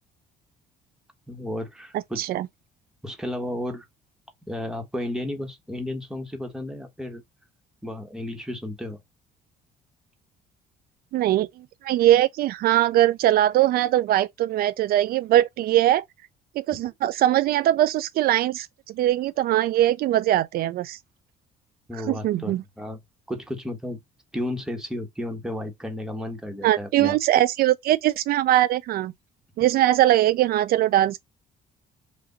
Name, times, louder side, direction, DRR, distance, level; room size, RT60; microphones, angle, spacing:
voice 1, 1.3-2.3 3.0-3.9 4.5-7.2 7.8-9.0 21.9-23.0 23.3-24.0 24.3-27.2, left 1 dB, 5° right, 1.5 m, -33 dB
voice 2, 11.1-11.5 11.8-16.0 16.6-21.0 22.1-22.6 26.6-29.1 29.6-31.2, right 13 dB, 65° right, 0.4 m, -21 dB
5.0 x 2.6 x 3.9 m
cardioid pair, 110°, 17 cm